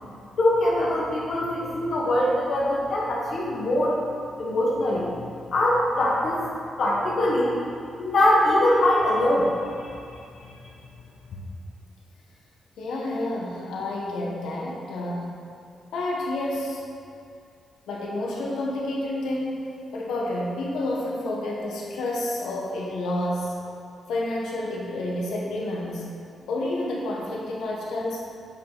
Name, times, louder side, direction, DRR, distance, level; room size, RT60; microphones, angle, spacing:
voice 1, 0.4-4.0 4.4-5.1 5.5-6.4 6.8-7.6 8.0-9.9 10.4-10.5, left 1 dB, 65° left, -4 dB, 1.2 m, -22 dB
voice 2, 12.8-15.3 15.9-16.8 17.9-19.7 19.9-23.6 24.1-26.1 26.5-28.2, left 1 dB, 85° left, -3 dB, 1.2 m, -29 dB
8.0 x 5.2 x 3.9 m, 2.4 s
cardioid pair, 65°, 0 cm